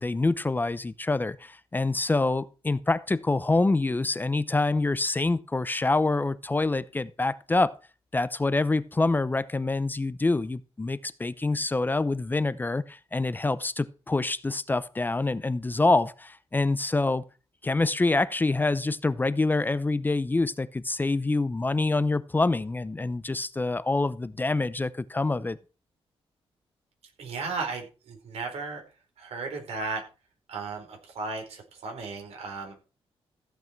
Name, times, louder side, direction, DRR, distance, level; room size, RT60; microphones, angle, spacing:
voice 1, 0.0-7.8 8.1-17.2 17.6-25.6, left 2 dB, 20° left, 0.6 m, -26 dB
voice 2, 27.2-28.8 29.2-30.0 30.5-32.7, right 4 dB, 85° right, 4.5 m, -35 dB
15.0 x 8.3 x 4.5 m
cardioid pair, 120°, 10 cm